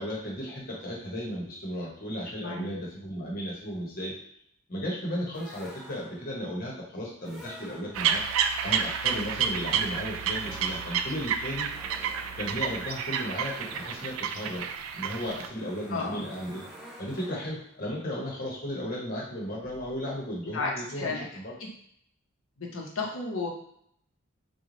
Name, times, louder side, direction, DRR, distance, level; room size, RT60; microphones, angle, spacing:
voice 1, 0.0-4.2 4.7-8.2 8.6-11.7 12.4-14.7 14.9-16.6 17.0-21.5, equal, 45° left, -4 dB, 1.0 m, -35 dB
sound 1, 5.3-6.4 7.2-8.3 9.0-17.7, equal, ahead, 0.5 m, -50 dB
sound 2, 7.9-15.5, right 7 dB, 90° right, 0.3 m, -30 dB
voice 2, 15.9-16.3 20.4-21.2 21.6-21.7 22.6-23.5, left 3 dB, 85° left, -1 dB, 0.8 m, -33 dB
3.1 x 2.3 x 3.8 m, 0.69 s
head